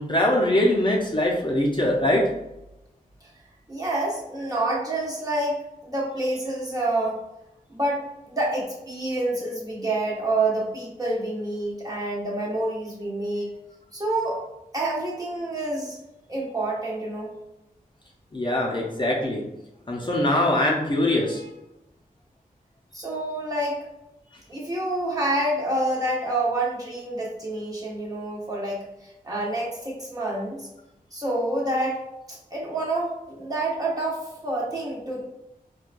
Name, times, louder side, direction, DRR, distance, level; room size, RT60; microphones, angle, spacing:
voice 1, 0.0-2.2 18.3-19.4 19.9-21.5, left 1 dB, 30° left, -2 dB, 0.6 m, -22 dB
voice 2, 3.7-7.2 7.7-13.5 13.9-14.4 14.7-16.0 16.3-17.3 22.9-23.9 24.5-30.7 31.1-32.0 32.3-35.2, right 2 dB, 25° right, -5 dB, 1.0 m, -28 dB
4.4 x 2.3 x 2.5 m, 0.90 s
wide cardioid pair, 90°, 15 cm